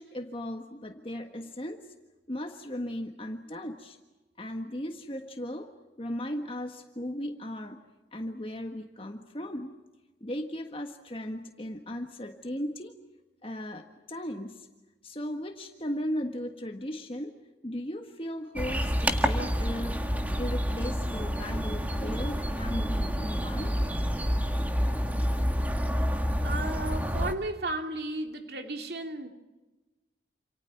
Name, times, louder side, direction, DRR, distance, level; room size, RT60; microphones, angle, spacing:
voice 1, 0.0-1.9 2.3-4.0 4.4-5.7 6.0-7.8 8.1-9.8 10.2-12.9 13.4-14.7 15.0-17.3 17.6-20.0 20.4-23.8, equal, 30° left, 4 dB, 1.5 m, -36 dB
sound 1, 18.6-27.3, equal, 10° right, 1.7 m, -28 dB
voice 2, 26.4-29.3, right 2 dB, 65° right, 5 dB, 2.8 m, -34 dB
28.5 x 28.0 x 5.9 m, 1.1 s
head